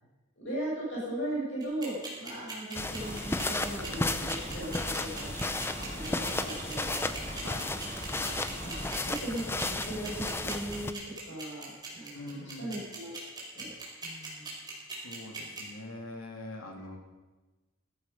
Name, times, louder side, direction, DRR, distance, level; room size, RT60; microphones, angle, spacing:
voice 1, 0.4-5.3 5.9-7.1 8.6-11.0 11.2-13.1 13.5-13.7 14.0-14.5, right 1 dB, 60° left, -5 dB, 7.1 m, -38 dB
sound 1, 1.6-15.6, right 5 dB, 20° right, 4.8 m, -40 dB
sound 2, 2.7-10.9, left 2 dB, 10° left, 0.6 m, -34 dB
sound 3, 3.0-9.0, right 1 dB, 35° right, 5.9 m, -44 dB
voice 2, 12.1-12.7 15.0-17.0, left 1 dB, 85° left, 1 dB, 3.2 m, -43 dB
16.0 x 14.0 x 5.7 m, 1.2 s
head